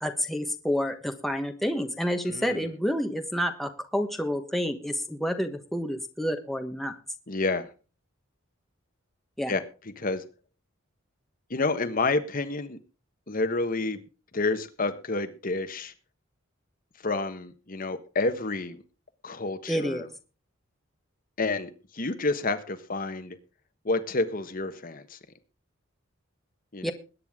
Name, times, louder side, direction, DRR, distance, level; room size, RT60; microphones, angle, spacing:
voice 1, 0.0-6.9 9.4-9.5 19.7-20.1 26.8-26.9, equal, ahead, 5 dB, 1.3 m, -29 dB
voice 2, 2.3-2.7 7.3-7.7 9.5-10.2 11.5-12.8 13.3-14.0 14.3-15.9 17.0-18.8 19.2-20.1 21.4-23.4 23.8-25.2 26.7-26.9, left 3 dB, 45° left, 10 dB, 1.3 m, -29 dB
21.0 x 9.3 x 3.7 m, 0.34 s
head